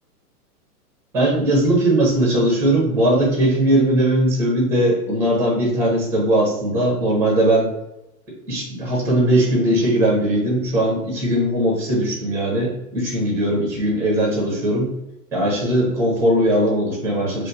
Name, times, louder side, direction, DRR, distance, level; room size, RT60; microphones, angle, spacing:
voice 1, 1.1-7.7 8.5-14.9 15.3-17.5, right 1 dB, 5° right, -3 dB, 0.4 m, -19 dB
2.9 x 2.0 x 2.4 m, 0.91 s
figure-of-eight pair, 110°, 46 cm